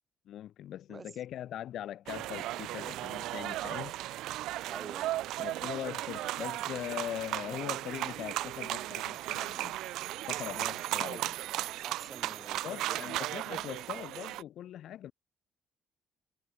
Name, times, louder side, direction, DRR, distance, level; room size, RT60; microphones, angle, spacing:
voice 1, 0.3-4.0 5.4-9.8 10.3-11.3 12.6-15.1, left 11 dB, 60° left, 0.5 m, -41 dB
sound 1, 2.1-14.4, right 15 dB, 80° right, 1.0 m, -36 dB
voice 2, 4.7-5.2 11.0-11.3 11.8-13.3, right 4 dB, 25° right, 5.1 m, -48 dB
cardioid pair, 135°, 0 cm